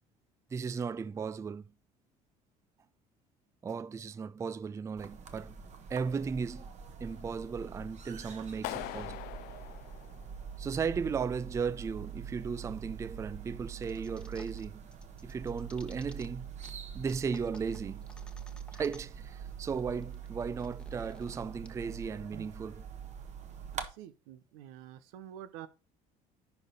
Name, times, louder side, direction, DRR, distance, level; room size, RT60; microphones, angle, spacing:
voice 1, 0.5-1.7 3.6-5.6 5.9-6.7 7.0-9.2 10.6-14.8 15.2-16.5 16.9-18.1 18.7-22.8, right 5 dB, 20° right, 0.3 m, -36 dB
sound 1, 5.0-23.9, right 7 dB, 45° right, 1.5 m, -44 dB
Clapping, 8.6-10.7, left 17 dB, 70° left, 0.5 m, -42 dB
sound 2, 13.8-14.6 14.9-16.3 16.6-16.7 17.0-19.2 19.5-19.6 19.8-21.7, left 1 dB, 5° left, 1.1 m, -55 dB
voice 2, 23.7-25.7, right 11 dB, 90° right, 0.9 m, -48 dB
10.5 x 4.6 x 3.8 m
supercardioid pair, 95°, 16 cm